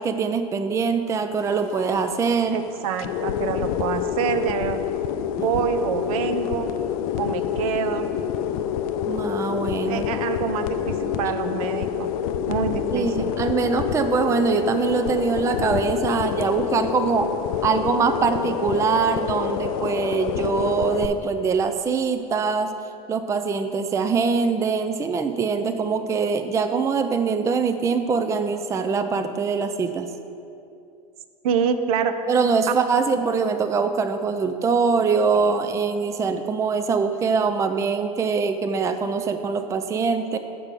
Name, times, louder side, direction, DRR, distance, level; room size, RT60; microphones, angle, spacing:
voice 1, 0.0-2.6 9.0-10.1 12.9-17.3 17.6-22.7 23.1-30.1 32.3-40.4, right 5 dB, 15° right, 8 dB, 0.4 m, -23 dB
sound 1, 1.4-21.1, left 9 dB, 60° left, 0.5 m, -27 dB
voice 2, 2.5-4.8 5.4-6.7 7.2-8.1 9.9-12.1 12.5-13.3 31.4-32.2, right 7 dB, 65° right, 9 dB, 0.6 m, -26 dB
7.3 x 6.0 x 5.2 m, 2.6 s
hypercardioid pair, 90°, 20 cm